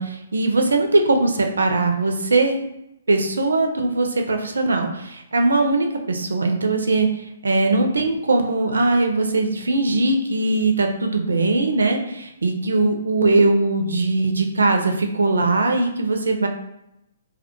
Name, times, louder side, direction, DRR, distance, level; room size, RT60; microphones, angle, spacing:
voice 1, 0.0-2.6 3.1-16.5, right 2 dB, 65° right, 4 dB, 0.3 m, -20 dB
2.2 x 2.1 x 2.8 m, 0.84 s
figure-of-eight pair, 125°, 0 cm